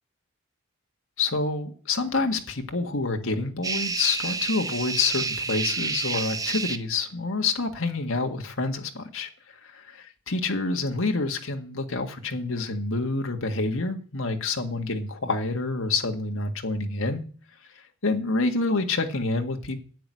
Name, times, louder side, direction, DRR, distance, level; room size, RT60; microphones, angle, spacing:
voice 1, 1.2-9.3 9.7-17.2 18.0-19.8, left 3 dB, 70° left, 4 dB, 1.7 m, -27 dB
sound 1, 3.6-6.8, right 4 dB, 15° right, 0.7 m, -29 dB
10.0 x 7.7 x 9.7 m, 0.43 s
head